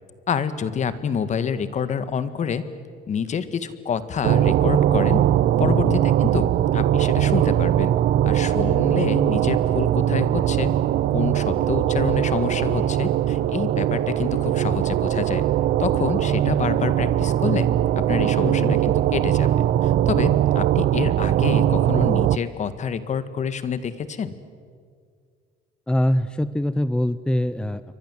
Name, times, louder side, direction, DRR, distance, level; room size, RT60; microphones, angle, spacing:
voice 1, 0.3-2.6 3.1-5.2 5.6-7.9 8.2-10.7 11.1-15.4 15.8-17.7 17.9-24.3, left 7 dB, 45° left, 13 dB, 1.7 m, -27 dB
sound 1, 4.2-22.4, right 12 dB, 70° right, 0.8 m, -20 dB
voice 2, 5.6-6.0 18.4-18.8 25.9-27.8, left 1 dB, 5° left, 14 dB, 0.6 m, -23 dB
29.0 x 24.0 x 7.7 m, 2.1 s
cardioid pair, 110°, 17 cm